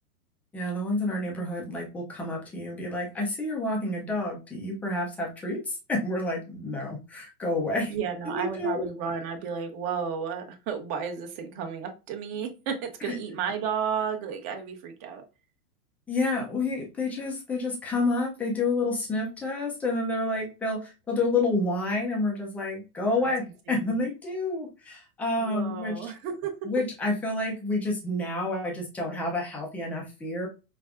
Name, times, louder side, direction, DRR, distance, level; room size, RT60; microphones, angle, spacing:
voice 1, 0.5-7.9 8.2-8.9 13.0-13.2 16.1-26.0 26.6-30.5, left 2 dB, 5° left, -1 dB, 0.4 m, -29 dB
voice 2, 7.9-15.2 23.2-23.3 23.7-24.0 25.4-26.6, right 7 dB, 35° right, 4 dB, 0.9 m, -33 dB
5.1 x 2.3 x 2.3 m, 0.29 s
hypercardioid pair, 130°, 46 cm